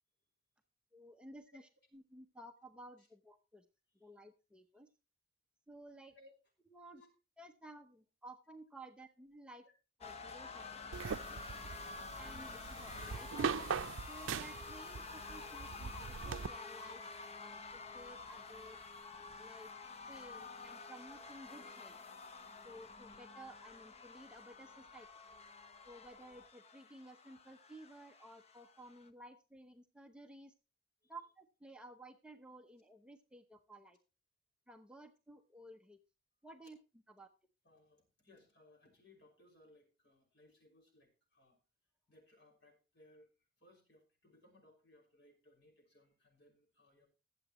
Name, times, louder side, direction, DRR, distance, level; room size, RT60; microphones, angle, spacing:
voice 1, 0.9-3.6 4.0-4.9 5.7-6.1 6.7-7.0 7.4-9.7 10.0-10.6 11.1-11.4 12.2-13.7 14.1-17.0 17.4-18.8 19.4-19.7 20.1-21.9 22.6-25.1 25.8-30.5 31.1-34.0 34.7-36.0 36.4-36.8 37.1-37.3, right 1 dB, 5° right, 5 dB, 0.7 m, -55 dB
sound 1, 10.0-29.1, left 4 dB, 35° left, 0.8 m, -50 dB
sound 2, 10.9-16.5, right 6 dB, 80° right, 0.5 m, -41 dB
voice 2, 37.6-41.6 42.1-43.3 43.6-47.1, left 1 dB, 60° left, 1 dB, 5.7 m, -65 dB
21.5 x 7.9 x 3.0 m, 0.32 s
head